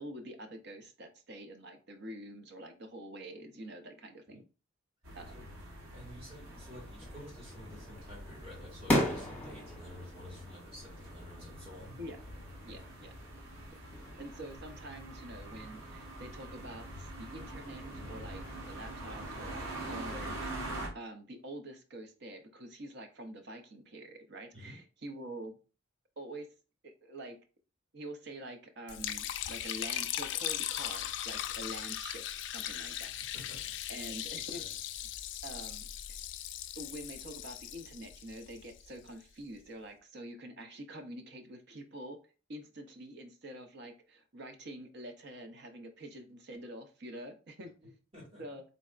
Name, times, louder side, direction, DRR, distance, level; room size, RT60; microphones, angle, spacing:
voice 1, 0.0-4.4 5.1-5.4 12.0-12.2 12.6-13.1 14.2-25.6 26.2-26.5 26.8-27.4 27.9-32.2 32.5-33.1 33.9-34.6 35.4-36.2 36.8-42.2 42.5-48.0 48.4-48.6, right 1 dB, 55° right, 6 dB, 0.6 m, -46 dB
sound 1, 5.0-20.9, right 1 dB, 85° right, 1.2 m, -45 dB
voice 2, 5.9-11.9 12.7-12.9 24.5-24.7 33.3-33.8 34.6-34.7 48.1-48.4, equal, 30° right, -4 dB, 2.1 m, -51 dB
sound 2, 6.4-20.3, left 1 dB, 5° left, 1.2 m, -41 dB
Liquid, 28.9-39.1, left 12 dB, 60° left, 0.3 m, -39 dB
4.1 x 3.3 x 2.4 m, 0.35 s
head